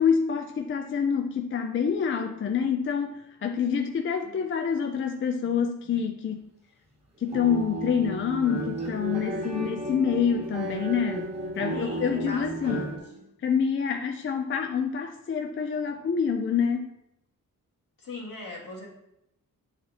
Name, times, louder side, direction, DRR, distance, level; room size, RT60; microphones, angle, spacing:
voice 1, 0.0-6.4 7.2-12.9 13.4-16.9, left 7 dB, 40° left, 5 dB, 0.4 m, -27 dB
sound 1, 7.2-13.0, right 1 dB, 20° right, 1.3 m, -33 dB
voice 2, 11.7-13.3 18.0-18.9, left 3 dB, 75° left, -3 dB, 1.9 m, -39 dB
9.2 x 4.0 x 2.9 m, 0.81 s
wide cardioid pair, 170°, 33 cm